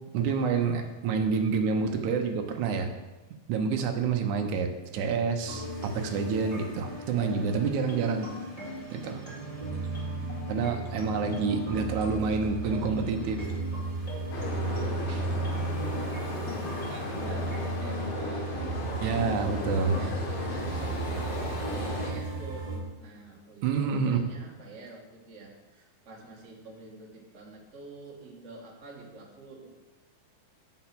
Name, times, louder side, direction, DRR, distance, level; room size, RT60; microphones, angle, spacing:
voice 1, 0.1-2.9 3.5-8.3 8.6-9.2 10.5-13.5 15.1-15.2 19.0-20.0 23.6-24.2, right 5 dB, 75° right, 5 dB, 1.8 m, -28 dB
sound 1, 5.4-22.8, right 3 dB, 10° left, 2.5 m, -35 dB
sound 2, 14.3-22.1, left 3 dB, 80° left, 3.4 m, -36 dB
voice 2, 14.9-18.5 18.9-19.6 19.9-20.3 20.6-22.7 22.9-29.7, right 3 dB, 45° right, -3 dB, 0.8 m, -47 dB
9.0 x 5.7 x 6.0 m, 1.1 s
omnidirectional pair, 4.3 m